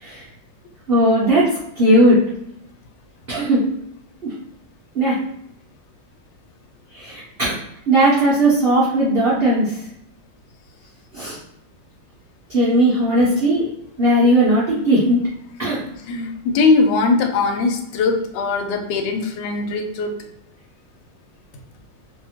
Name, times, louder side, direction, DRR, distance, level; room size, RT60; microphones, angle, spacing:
voice 1, 0.9-1.5 1.8-2.2 3.3-3.6 4.2-4.3 4.9-5.2 6.9-7.6 7.9-9.7 11.1-11.4 12.5-13.7 14.0-15.2 15.6-15.8, right 1 dB, 55° right, -8 dB, 0.7 m, -17 dB
voice 2, 15.9-20.2, left 4 dB, 90° left, 5 dB, 1.3 m, -20 dB
2.8 x 2.5 x 2.8 m, 0.76 s
omnidirectional pair, 1.9 m